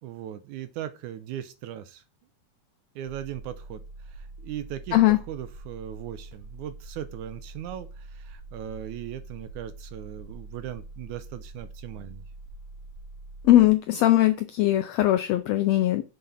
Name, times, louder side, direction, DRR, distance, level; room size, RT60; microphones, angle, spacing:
voice 1, 0.0-2.0 3.0-3.8 4.2-5.0 5.3-12.2, right 11 dB, 75° right, 2.1 m, -38 dB
sound 1, 3.1-13.7, right 2 dB, 45° right, 4.0 m, -44 dB
voice 2, 13.4-16.0, left 14 dB, 85° left, 1.5 m, -20 dB
6.8 x 6.5 x 5.6 m
omnidirectional pair, 3.6 m